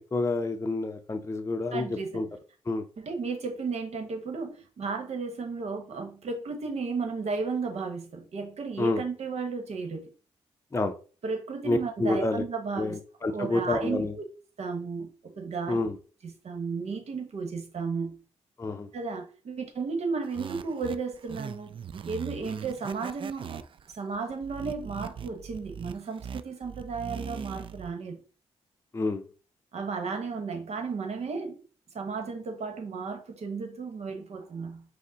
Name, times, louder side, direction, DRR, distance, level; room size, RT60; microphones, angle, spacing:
voice 1, 0.0-1.9 2.1-2.3 2.7-2.8 8.8-9.0 10.7-10.9 11.6-12.4 12.8-14.1 15.7-16.0 18.6-18.9 28.9-29.2, left 2 dB, 25° left, 0.6 m, -28 dB
voice 2, 1.7-2.1 3.0-10.1 11.2-13.0 13.3-14.0 14.6-15.8 16.2-18.2 18.9-21.7 22.0-23.6 23.9-28.2 29.7-31.6 31.9-34.8, right 4 dB, 65° right, 1.1 m, -34 dB
sound 1, 20.2-27.9, right 7 dB, 45° right, 0.3 m, -41 dB
5.1 x 2.1 x 3.9 m
cardioid pair, 55°, 12 cm